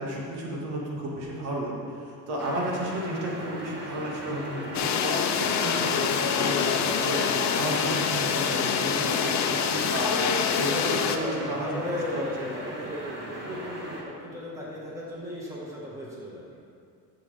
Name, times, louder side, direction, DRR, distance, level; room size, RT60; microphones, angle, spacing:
voice 1, 0.0-12.5, right 1 dB, 75° right, -3 dB, 2.4 m, -33 dB
sound 1, 2.4-14.0, right 1 dB, 25° right, 1.7 m, -38 dB
sound 2, 4.7-11.2, left 7 dB, 45° left, 0.7 m, -26 dB
voice 2, 10.7-16.6, left 1 dB, 5° right, -5 dB, 1.9 m, -36 dB
12.5 x 7.0 x 3.7 m, 2.4 s
cardioid pair, 140°, 39 cm